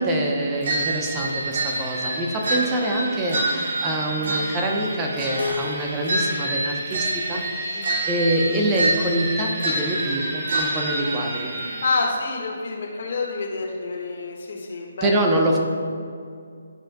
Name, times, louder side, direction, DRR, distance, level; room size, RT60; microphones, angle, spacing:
voice 1, 0.0-11.5 15.0-15.6, right 1 dB, 20° right, 1 dB, 1.0 m, -25 dB
sound 1, 0.6-12.0, right 2 dB, 50° right, 1.2 m, -27 dB
Keyboard (musical), 5.4-8.3, left 4 dB, 90° left, 0.5 m, -36 dB
voice 2, 11.8-15.6, left 3 dB, 55° left, -2 dB, 1.8 m, -28 dB
12.5 x 5.0 x 2.4 m, 2.3 s
figure-of-eight pair, 150°, 0 cm